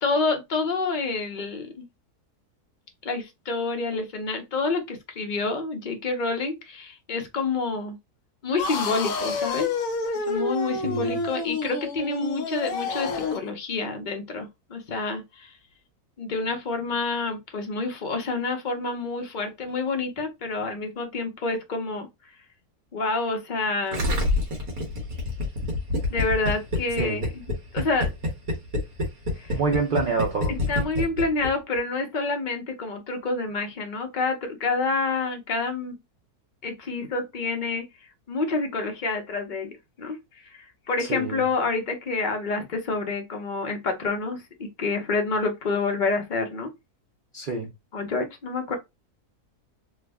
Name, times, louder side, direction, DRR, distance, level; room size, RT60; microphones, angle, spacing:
voice 1, 0.0-1.8 3.0-8.0 8.4-9.7 10.3-15.5 16.2-22.1 22.9-24.1 26.1-27.4 27.7-28.1 29.4-29.6 30.5-36.0 36.6-37.8 38.3-40.2 40.4-46.7 47.9-48.8, left 3 dB, 45° left, 0.6 m, -28 dB
sound 1, 8.6-13.5, left 4 dB, 65° left, 1.0 m, -29 dB
voice 2, 10.8-11.2 27.0-27.2 29.5-30.5 41.0-41.4 47.3-47.7, right 4 dB, 80° right, 0.4 m, -27 dB
Gurgling, 23.9-31.5 31.7-31.8, left 2 dB, 65° right, 1.6 m, -26 dB
3.3 x 2.1 x 3.4 m
omnidirectional pair, 1.7 m